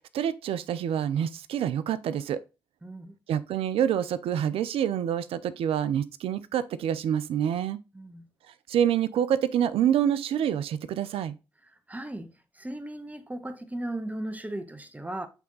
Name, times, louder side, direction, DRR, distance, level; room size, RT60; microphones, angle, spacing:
voice 1, 0.1-2.4 3.3-7.8 8.7-11.4, right 9 dB, 80° right, 0.5 m, -27 dB
voice 2, 2.8-3.2 7.9-8.3 11.6-15.3, right 1 dB, 15° right, 1.3 m, -37 dB
8.2 x 3.5 x 3.9 m
supercardioid pair, 50°, 10 cm